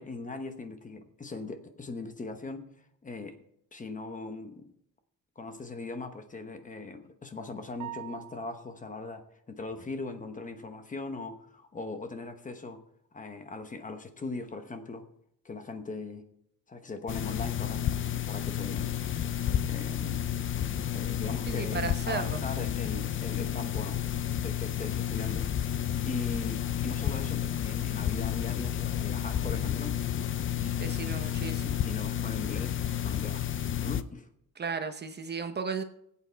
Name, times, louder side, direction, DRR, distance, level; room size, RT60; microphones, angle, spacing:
voice 1, 0.0-2.7 3.0-3.4 3.7-4.7 5.4-12.8 13.1-15.1 15.4-16.2 16.7-19.0 19.7-20.3 20.9-24.1 24.4-30.1 30.4-31.0 31.8-33.5 33.8-34.3, left 3 dB, 25° left, 7 dB, 1.0 m, -40 dB
sound 1, 7.8-8.9, right 15 dB, 60° right, 1.1 m, -43 dB
sound 2, 17.1-34.0, left 10 dB, 40° left, 0.5 m, -31 dB
voice 2, 21.4-22.4 30.8-31.8 34.6-35.8, right 5 dB, 30° right, 7 dB, 0.8 m, -35 dB
20.0 x 8.5 x 3.4 m, 0.75 s
cardioid pair, 165°, 33 cm